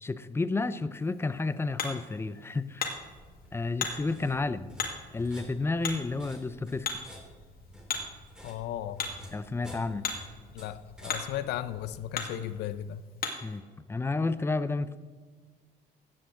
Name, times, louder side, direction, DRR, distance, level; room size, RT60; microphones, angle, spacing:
voice 1, 0.0-2.9 3.5-4.7 5.1-6.9 9.3-10.0 13.4-13.6 13.9-15.0, left 3 dB, 15° left, 14 dB, 0.5 m, -31 dB
Hammer, 0.9-13.6, left 5 dB, 60° left, 1.9 m, -40 dB
sound 1, 2.8-12.1, left 1 dB, 5° right, 2.5 m, -50 dB
voice 2, 8.4-9.1 10.5-13.0, left 11 dB, 80° left, 14 dB, 0.6 m, -36 dB
14.0 x 8.7 x 3.8 m, 1.5 s
cardioid pair, 110°, 17 cm